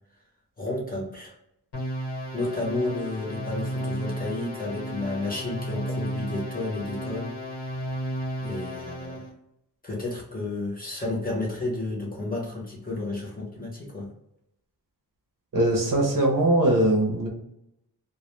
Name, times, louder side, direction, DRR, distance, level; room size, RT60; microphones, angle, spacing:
voice 1, 0.6-1.4 2.3-7.3 8.4-9.3 9.8-14.1, left 2 dB, 20° left, -4 dB, 0.8 m, -31 dB
sound 1, 1.7-9.3, equal, 75° left, 1.1 m, -33 dB
voice 2, 15.5-17.3, right 1 dB, 55° right, 0 dB, 0.7 m, -21 dB
2.2 x 2.1 x 3.0 m, 0.80 s
wide cardioid pair, 140°, 40 cm